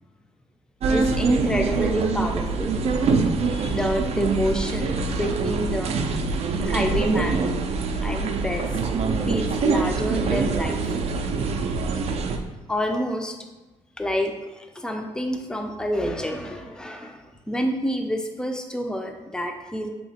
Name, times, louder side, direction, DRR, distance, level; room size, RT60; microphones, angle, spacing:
sound 1, 0.8-12.4, right 4 dB, 55° right, 0.4 m, -24 dB
voice 1, 0.9-2.8 3.4-6.0 6.6-7.4 8.0-8.7 9.3-10.9 12.7-13.4 14.0-19.9, equal, 5° left, 3 dB, 0.4 m, -28 dB
2.9 x 2.7 x 4.1 m, 1.1 s
cardioid pair, 85°, 13 cm